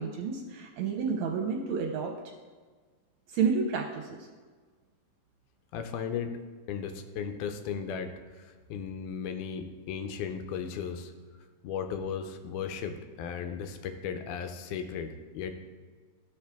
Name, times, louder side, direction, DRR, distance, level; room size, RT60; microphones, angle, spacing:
voice 1, 0.0-2.1 3.3-4.2, right 5 dB, 75° right, 1 dB, 1.7 m, -30 dB
voice 2, 5.7-6.4 6.7-11.1 11.6-15.5, left 7 dB, 80° left, 7 dB, 2.1 m, -36 dB
13.0 x 4.7 x 3.4 m, 1.5 s
omnidirectional pair, 3.7 m